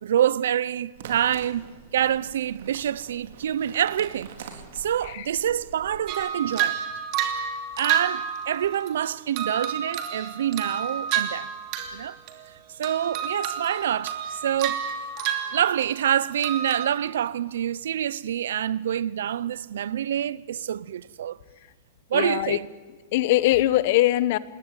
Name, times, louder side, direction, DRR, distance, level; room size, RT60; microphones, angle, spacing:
voice 1, 0.0-1.7 1.9-6.8 7.8-11.5 11.9-12.2 12.8-14.8 15.5-21.4 22.1-22.7, right 10 dB, 90° right, 0.8 m, -26 dB
sound 1, 0.9-6.0, right 6 dB, 65° right, 4.1 m, -45 dB
sound 2, 6.1-8.9 9.4-12.0 12.3-12.6 12.8-16.1 16.4-16.9, right 9 dB, 35° right, 2.8 m, -30 dB
voice 2, 22.1-22.6 23.1-24.4, left 15 dB, 45° left, 1.0 m, -21 dB
26.5 x 21.0 x 9.0 m
supercardioid pair, 170°, 0 cm